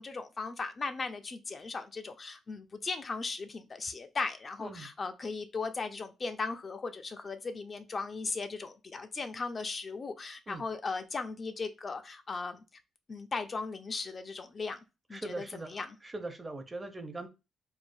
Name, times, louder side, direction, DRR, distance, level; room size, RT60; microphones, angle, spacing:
voice 1, 0.0-12.6 13.1-14.8 15.1-15.9, left 4 dB, 35° left, 0.3 m, -37 dB
voice 2, 15.1-17.3, right 2 dB, 20° right, 0.5 m, -41 dB
3.2 x 2.1 x 2.5 m
cardioid pair, 90°, 0 cm